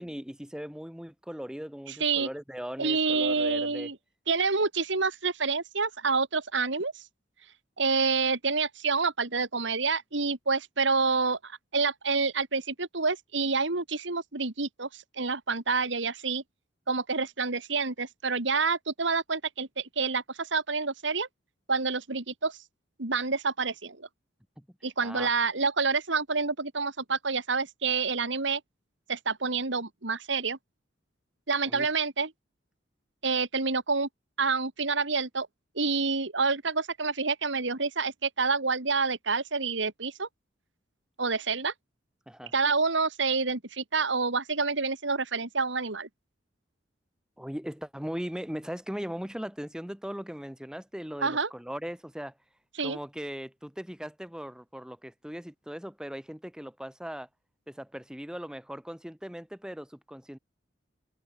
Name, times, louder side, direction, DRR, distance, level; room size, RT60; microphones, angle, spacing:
voice 1, 0.0-3.9 24.6-24.7 25.0-25.3 31.7-31.9 42.3-42.5 47.4-52.3 52.8-57.3 57.7-60.4, equal, 5° right, 1.1 m, -39 dB
voice 2, 1.9-2.3 2.8-4.0 4.3-7.0 7.8-16.4 16.9-21.3 21.7-22.6 23.0-24.1 24.8-28.6 29.1-30.6 31.5-32.3 33.2-34.1 34.4-35.5 35.8-40.3 41.2-41.7 42.5-46.1 51.2-51.5 52.8-53.0, right 4 dB, 70° right, 2.3 m, -28 dB
head